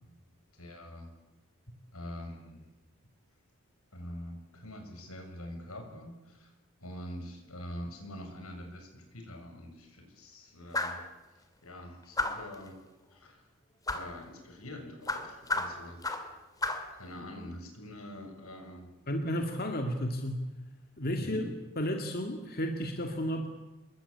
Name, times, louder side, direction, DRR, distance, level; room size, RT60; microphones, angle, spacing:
voice 1, 0.6-1.1 1.9-2.6 3.9-6.5 6.8-11.0 11.3-12.8 13.1-13.4 13.9-16.0 17.0-18.9 21.2-21.6, left 1 dB, 80° left, 4 dB, 7.0 m, -44 dB
sound 1, 10.7-11.1 12.2-12.5 13.9-14.1 15.1-16.3 16.6-16.9, left 2 dB, 15° left, 2.2 m, -32 dB
voice 2, 19.1-20.5 21.0-21.4 21.8-23.5, equal, 45° left, 4 dB, 2.2 m, -32 dB
27.0 x 22.5 x 8.6 m, 1.1 s
head